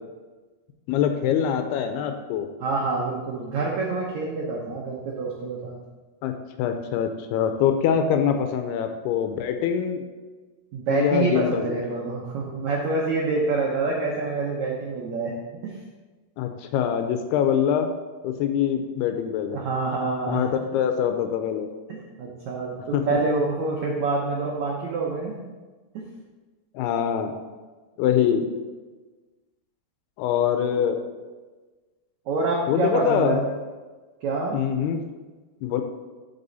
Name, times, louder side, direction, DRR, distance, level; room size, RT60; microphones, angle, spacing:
voice 1, 0.9-2.5 6.2-6.3 6.6-10.1 10.9-11.8 16.4-17.9 18.2-19.6 20.3-21.7 22.9-23.0 26.7-27.3 28.0-28.5 30.2-31.0 32.7-33.6 34.5-35.1 35.6-35.8, left 8 dB, 80° left, 6 dB, 2.5 m, -24 dB
voice 2, 2.6-5.8 10.7-15.3 15.6-15.8 19.5-20.5 22.2-25.3 25.9-26.0 32.3-33.4 34.2-34.6, right 3 dB, 85° right, -2 dB, 1.5 m, -26 dB
12.5 x 5.5 x 4.0 m, 1.3 s
omnidirectional pair, 4.9 m